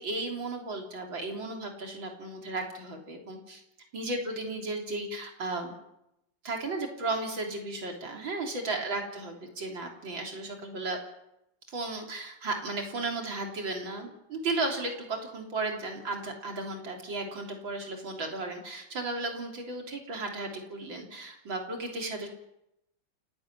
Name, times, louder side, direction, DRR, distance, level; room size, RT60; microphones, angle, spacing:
voice 1, 0.0-3.6 3.9-5.7 6.4-11.0 11.7-22.3, right 2 dB, 80° right, 2 dB, 4.2 m, -34 dB
28.5 x 11.5 x 8.9 m, 0.85 s
omnidirectional pair, 2.1 m